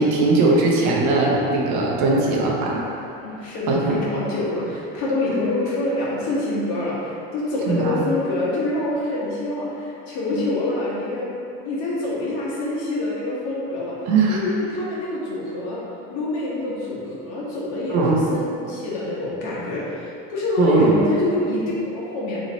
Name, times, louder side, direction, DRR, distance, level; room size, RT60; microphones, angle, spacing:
voice 1, 0.0-2.7 3.7-4.0 7.7-8.0 10.3-10.5 14.1-14.4 17.9-18.2 20.6-21.0, right 3 dB, 65° right, -3 dB, 0.7 m, -19 dB
voice 2, 3.2-11.3 11.6-13.9 14.3-15.8 16.1-22.4, left 2 dB, 65° left, -7 dB, 1.2 m, -26 dB
3.0 x 2.7 x 4.0 m, 2.7 s
cardioid pair, 145°, 31 cm